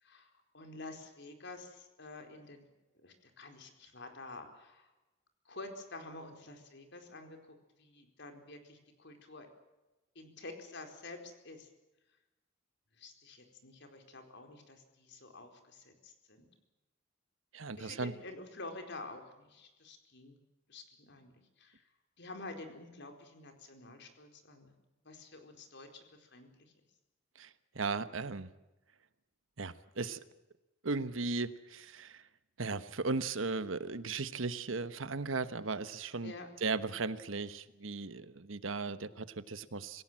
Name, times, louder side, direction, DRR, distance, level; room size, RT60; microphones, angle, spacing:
voice 1, 0.0-2.7 3.0-4.9 5.5-7.4 7.8-9.5 10.1-11.7 13.0-16.5 17.8-20.4 20.7-21.8 22.2-24.7 25.0-26.5 36.2-36.5, left 2 dB, 65° left, 5 dB, 4.5 m, -49 dB
voice 2, 17.5-18.1 27.4-27.5 27.7-28.5 29.6-30.2 30.8-32.2 32.6-36.3 36.6-40.0, right 3 dB, 85° right, 13 dB, 1.2 m, -36 dB
26.5 x 16.5 x 7.6 m, 1.0 s
head